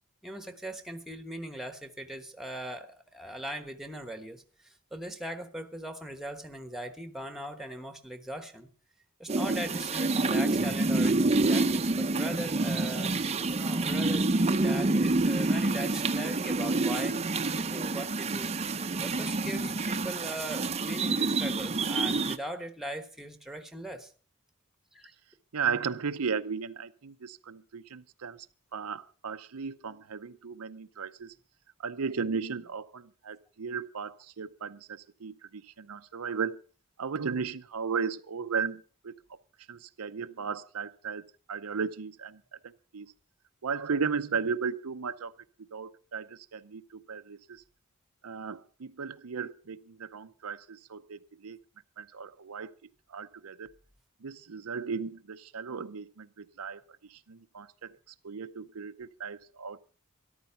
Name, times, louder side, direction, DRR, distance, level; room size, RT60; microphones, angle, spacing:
voice 1, 0.2-8.7 9.2-14.3 14.5-17.2 17.6-18.5 19.0-24.1 24.9-25.1, right 1 dB, ahead, 9 dB, 1.2 m, -40 dB
sound 1, 9.3-22.4, right 3 dB, 30° right, 0.7 m, -28 dB
voice 2, 25.5-28.5 28.7-31.3 31.8-36.6 37.0-39.4 39.7-43.1 43.6-45.3 45.7-47.6 48.2-51.6 52.0-52.7 53.1-53.7 54.2-59.8, right 5 dB, 75° right, 10 dB, 0.6 m, -36 dB
13.5 x 11.5 x 5.7 m, 0.41 s
head